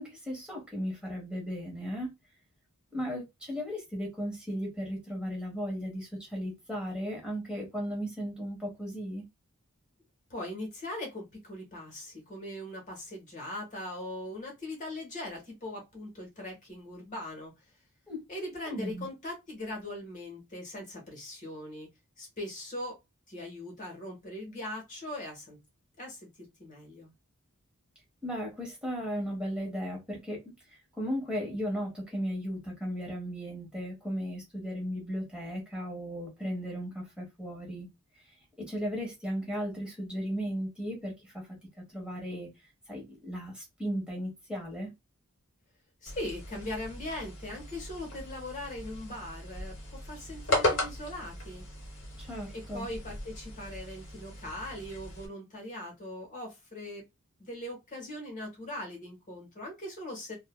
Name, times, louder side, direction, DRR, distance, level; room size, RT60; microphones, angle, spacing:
voice 1, 0.0-2.1 2.9-9.2 18.1-18.2 18.6-19.1 28.2-30.4 31.0-37.9 38.6-41.5 41.9-42.5 42.9-44.9 52.2-52.9, equal, 5° right, 1.2 m, -36 dB
voice 2, 10.3-17.5 18.3-21.9 22.2-23.0 23.3-25.6 26.0-26.3 26.6-27.1 46.0-51.6 52.5-57.1 57.4-60.3, left 1 dB, 35° left, 1.3 m, -40 dB
sound 1, 46.1-55.3, left 1 dB, 60° left, 1.0 m, -36 dB
3.5 x 2.2 x 2.2 m
head